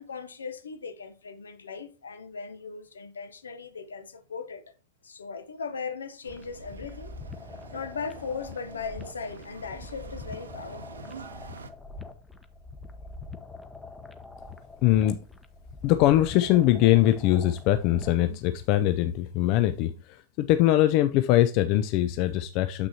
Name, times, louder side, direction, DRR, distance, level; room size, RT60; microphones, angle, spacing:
voice 1, 0.0-4.6 5.0-7.1 7.7-11.0, left 5 dB, 70° left, 0.8 m, -38 dB
sound 1, 6.2-11.7, right 5 dB, 70° right, 0.7 m, -46 dB
sound 2, 6.3-18.3, left 3 dB, 10° left, 0.8 m, -44 dB
voice 2, 14.8-15.2 15.8-22.9, left 13 dB, 45° left, 0.4 m, -22 dB
7.9 x 6.1 x 2.8 m
figure-of-eight pair, 90°, 0 cm